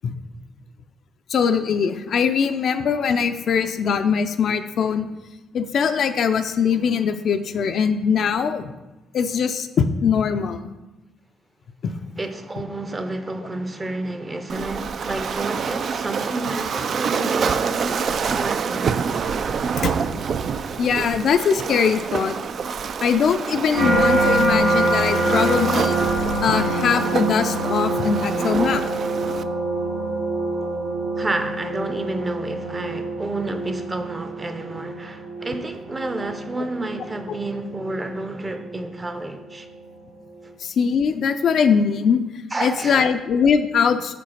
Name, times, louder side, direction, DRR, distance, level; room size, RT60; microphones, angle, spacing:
voice 1, 1.3-5.1 5.5-8.7 9.1-10.6 11.8-11.9 19.8-19.9 20.8-22.4 23.0-25.9 26.4-28.8 40.6-42.2 42.6-44.1, left 6 dB, 60° left, 0.4 m, -21 dB
voice 2, 12.2-18.9 31.2-39.7 42.5-43.1, right 2 dB, 25° right, 0.6 m, -30 dB
Waves surf, 14.5-29.4, right 6 dB, 55° right, 0.3 m, -27 dB
sound 1, 23.7-38.9 39.5-39.9, right 2 dB, 85° right, 2.2 m, -25 dB
5.2 x 4.0 x 5.6 m
cardioid pair, 90°, 0 cm